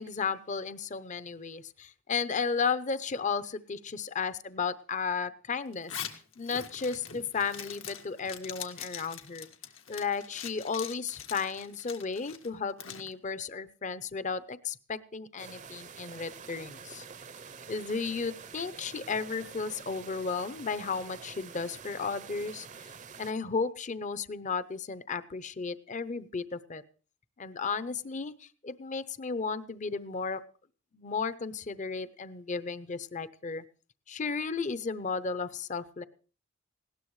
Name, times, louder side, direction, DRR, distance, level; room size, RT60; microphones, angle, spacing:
voice 1, 0.0-9.5 9.9-17.0 17.7-22.7 23.2-26.8 27.4-30.4 30.9-33.6 34.1-36.0, left 5 dB, 40° left, 14 dB, 0.7 m, -34 dB
Zipper (clothing), 5.7-13.1, left 9 dB, 85° left, 1.7 m, -43 dB
sound 1, 15.4-23.3, right 6 dB, 40° right, 0.6 m, -47 dB
19.5 x 17.0 x 3.2 m, 0.39 s
head